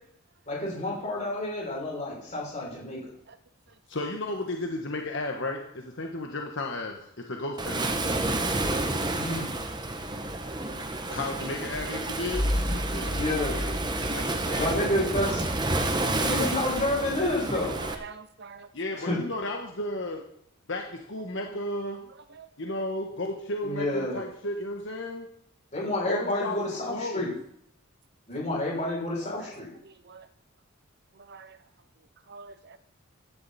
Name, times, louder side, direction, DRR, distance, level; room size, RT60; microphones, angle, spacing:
voice 1, 0.5-3.0 9.1-9.5 13.1-13.6 14.5-15.4 16.1-17.8 19.0-19.2 23.6-24.2 25.7-27.3 28.3-29.7, left 1 dB, 35° left, -4 dB, 6.6 m, -29 dB
voice 2, 3.9-7.9 11.1-12.5 12.9-13.2 13.4-13.5 14.0-15.1 18.7-20.2 20.7-22.0 22.6-25.3 26.0-26.6 26.9-27.3, left 2 dB, 60° left, 2 dB, 1.4 m, -33 dB
Waves surf, 7.6-17.9, right 2 dB, 20° right, 1.1 m, -30 dB
voice 3, 10.4-10.8 12.7-13.2 15.8-16.3 17.5-18.7 22.3-22.5 29.8-30.3 31.2-31.6 32.3-32.8, right 5 dB, 50° right, 12 dB, 0.7 m, -45 dB
sound 1, 12.3-15.9, left 1 dB, 20° left, 1.5 m, -32 dB
15.5 x 11.0 x 4.3 m, 0.70 s
head